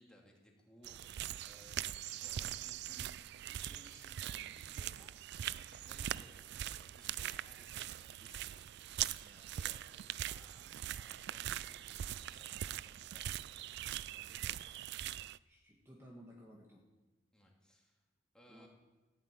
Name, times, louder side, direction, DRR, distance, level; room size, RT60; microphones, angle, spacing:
voice 1, 0.0-3.1 3.5-14.8 17.3-18.0 18.3-18.7, left 1 dB, 5° left, -1 dB, 2.7 m, -63 dB
sound 1, 0.8-15.4, right 12 dB, 60° right, 0.3 m, -42 dB
voice 2, 15.4-16.8 18.5-18.7, equal, 15° right, -2 dB, 1.6 m, -56 dB
15.0 x 7.6 x 8.9 m, 1.2 s
head